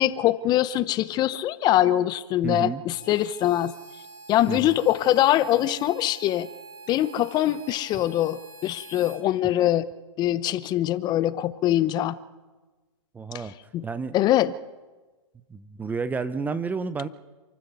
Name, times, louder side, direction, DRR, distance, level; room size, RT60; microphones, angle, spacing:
voice 1, 0.0-3.7 4.3-6.5 6.9-9.8 10.2-12.2 13.7-13.8 14.1-14.5, left 13 dB, 25° left, 16 dB, 0.8 m, -23 dB
voice 2, 2.4-2.8 4.5-4.8 13.1-13.5 13.8-14.1 15.5-17.1, right 5 dB, 10° right, 14 dB, 0.8 m, -30 dB
Harmonica, 2.9-9.2, right 3 dB, 35° right, 5.3 m, -46 dB
28.0 x 13.0 x 8.3 m, 1.3 s
hypercardioid pair, 130°, 16 cm